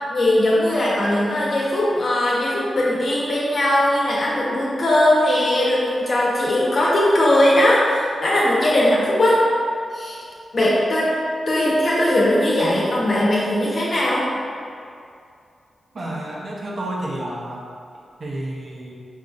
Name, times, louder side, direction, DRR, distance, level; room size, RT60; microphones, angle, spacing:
voice 1, 0.1-9.4 9.9-10.2 10.5-11.1 11.5-14.3, left 1 dB, 55° left, -6 dB, 1.0 m, -19 dB
voice 2, 15.9-17.7 18.2-18.9, right 1 dB, 50° right, -4 dB, 0.7 m, -30 dB
5.2 x 2.7 x 2.5 m, 2.4 s
wide cardioid pair, 95°, 0 cm